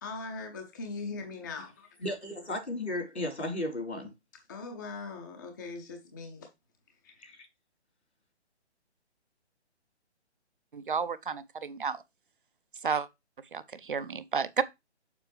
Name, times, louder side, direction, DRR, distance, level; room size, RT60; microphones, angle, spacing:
voice 1, 0.0-1.9 4.5-6.5 7.0-7.1, left 3 dB, 15° left, 0.6 m, -40 dB
voice 2, 2.0-4.1 7.2-7.5, left 1 dB, 70° left, 3.7 m, -35 dB
voice 3, 10.7-12.0 12.8-13.1 13.5-14.6, right 6 dB, 50° right, 0.6 m, -31 dB
6.9 x 6.6 x 3.1 m
figure-of-eight pair, 140°, 35 cm